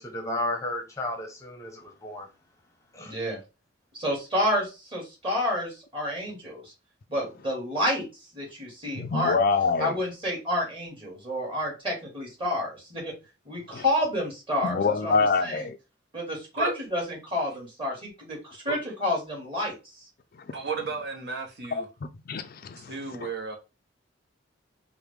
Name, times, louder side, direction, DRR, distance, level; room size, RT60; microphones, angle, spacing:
voice 1, 0.0-2.3 2.9-3.1, left 1 dB, 15° left, 0.7 m, -33 dB
voice 2, 3.0-3.4 3.9-6.6 7.1-8.1 8.3-9.4 9.8-13.1 13.5-15.7 16.1-19.7, left 1 dB, 25° right, 2.0 m, -29 dB
voice 3, 8.9-10.0 13.7-13.8 14.6-15.8 21.7-21.8 22.3-22.9 23.2-23.3, left 4 dB, 50° left, 0.4 m, -25 dB
voice 4, 20.5-21.9 22.9-23.6, right 4 dB, 60° right, 0.9 m, -32 dB
4.6 x 2.1 x 3.4 m
head